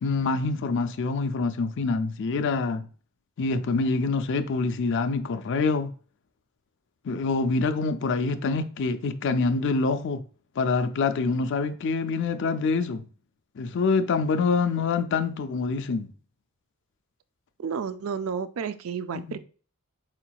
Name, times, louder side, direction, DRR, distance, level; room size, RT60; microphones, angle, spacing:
voice 1, 0.0-2.9 3.4-5.9 7.1-10.2 10.6-13.0 13.6-16.1 19.1-19.4, left 4 dB, 55° left, 0.4 m, -26 dB
voice 2, 17.6-19.4, right 6 dB, 65° right, 0.4 m, -31 dB
4.4 x 3.9 x 2.2 m
head